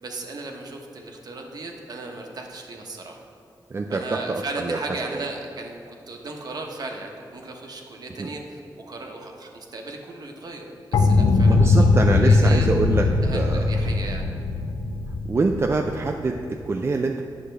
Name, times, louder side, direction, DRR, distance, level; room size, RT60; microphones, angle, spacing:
voice 1, 0.0-3.2 3.9-10.7 10.9-11.7 12.1-12.7 13.0-14.3, right 3 dB, 55° right, 2 dB, 1.0 m, -36 dB
voice 2, 3.7-4.8 5.1-5.2 11.4-13.1 13.3-13.7 15.3-17.2, right 3 dB, 30° right, 3 dB, 0.4 m, -25 dB
sound 1, 10.9-16.6, left 3 dB, 70° left, 0.5 m, -20 dB
9.6 x 6.5 x 3.3 m, 2.5 s
cardioid pair, 90°, 8 cm